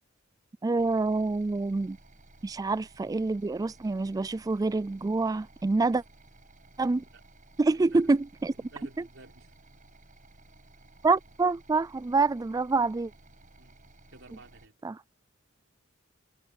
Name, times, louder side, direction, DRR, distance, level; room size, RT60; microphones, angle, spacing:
voice 1, 0.6-2.0 2.4-6.0 6.8-7.0 7.6-8.5 11.0-13.1 14.8-15.0, right 3 dB, 20° right, 0.3 m, -26 dB
sound 1, 0.8-14.7, right 2 dB, 40° right, 6.5 m, -56 dB
voice 2, 8.5-9.6 13.6-13.8 14.1-14.8, right 2 dB, 70° right, 4.2 m, -53 dB
head